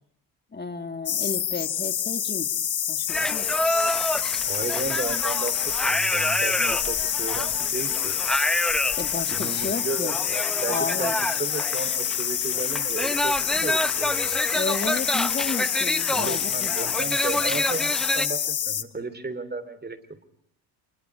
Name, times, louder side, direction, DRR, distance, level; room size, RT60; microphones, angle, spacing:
voice 1, 0.5-2.5 2.9-3.5 9.0-10.2 10.7-11.1 14.5-16.7, left 4 dB, 20° left, 8 dB, 2.3 m, -32 dB
sound 1, 1.1-18.8, left 9 dB, 40° left, 1.4 m, -27 dB
sound 2, 3.1-18.3, equal, ahead, 1.0 m, -28 dB
voice 2, 4.4-8.1 9.3-14.4 16.1-20.0, right 3 dB, 20° right, 12 dB, 3.5 m, -34 dB
27.5 x 22.0 x 5.0 m, 0.68 s
supercardioid pair, 75°, 47 cm